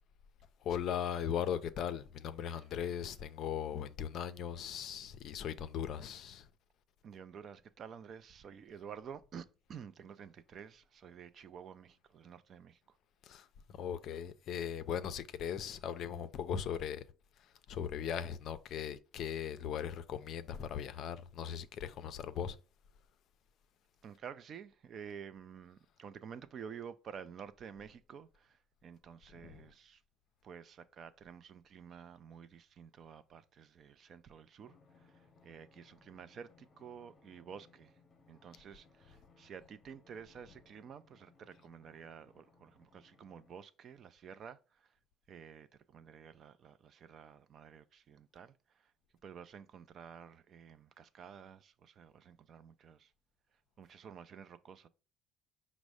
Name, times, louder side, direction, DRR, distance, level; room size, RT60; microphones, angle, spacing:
voice 1, 0.6-6.5 13.2-17.0 17.4-22.6 29.3-29.7, left 8 dB, 55° left, 0.4 m, -39 dB
voice 2, 7.0-13.0 24.0-30.0 30.4-38.0 38.3-44.9 45.3-48.9 49.2-53.1 53.8-54.9, right 7 dB, 40° right, 0.3 m, -51 dB
Drum, 34.6-43.6, left 4 dB, 30° left, 0.8 m, -66 dB
5.2 x 2.0 x 4.7 m
cardioid pair, 135°, 0 cm